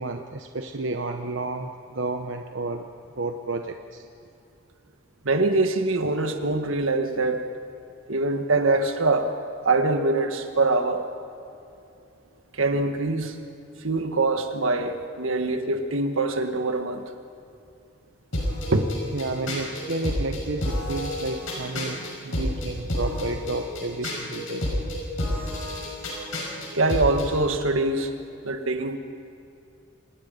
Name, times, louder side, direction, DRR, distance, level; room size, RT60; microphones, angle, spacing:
voice 1, 0.0-2.9 3.2-4.0 19.1-24.7, right 3 dB, 70° right, 5 dB, 0.9 m, -31 dB
voice 2, 5.2-7.5 8.1-9.4 9.6-11.0 12.5-13.4 13.8-17.0 18.7-18.9 26.7-28.1 28.4-29.0, right 2 dB, 90° right, 6 dB, 1.6 m, -23 dB
sound 1, 18.3-27.3, left 1 dB, 85° left, 5.8 m, -30 dB
26.5 x 19.5 x 5.4 m, 2.6 s
head